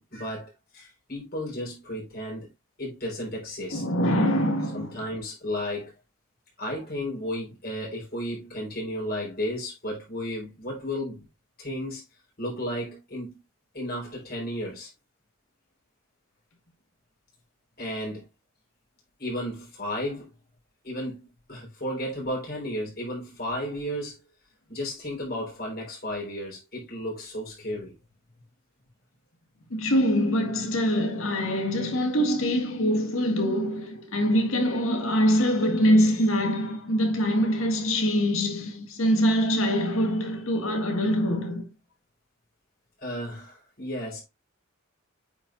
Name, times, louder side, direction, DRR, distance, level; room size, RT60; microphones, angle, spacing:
voice 1, 0.0-2.5 2.8-3.8 4.7-5.9 6.6-11.3 11.6-12.0 12.4-13.4 13.7-14.9 17.8-18.2 19.2-20.3 20.8-24.2 24.7-27.9 43.0-44.2, equal, 45° left, 4.3 m, -33 dB
voice 2, 3.7-5.0 29.7-41.7, equal, 70° left, 1.9 m, -24 dB
8.9 x 5.5 x 2.6 m
head